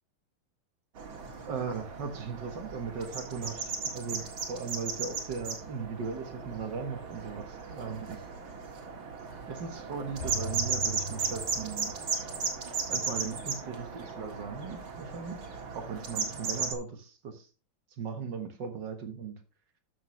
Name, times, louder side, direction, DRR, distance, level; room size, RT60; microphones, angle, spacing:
sound 1, 1.0-16.7, right 5 dB, 90° right, 2.6 m, -36 dB
voice 1, 1.5-8.2 9.5-12.0 12.9-15.4 15.7-17.5 18.0-19.4, right 5 dB, 65° right, 7 dB, 1.9 m, -38 dB
sound 2, 10.2-12.4 12.7-12.8, right 1 dB, 65° left, 3.1 m, -39 dB
13.5 x 6.2 x 3.1 m, 0.31 s
omnidirectional pair, 2.1 m